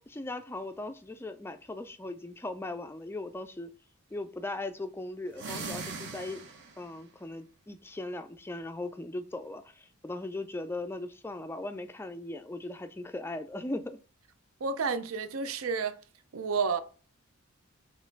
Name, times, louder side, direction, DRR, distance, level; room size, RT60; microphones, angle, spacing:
voice 1, 0.0-3.7 4.1-6.4 6.8-14.0, left 2 dB, 10° left, 0.3 m, -38 dB
sound 1, 5.3-6.9, right 4 dB, 55° right, 0.9 m, -40 dB
voice 2, 14.6-16.0 16.3-16.8, right 5 dB, 70° right, 0.5 m, -30 dB
4.2 x 3.1 x 3.9 m
head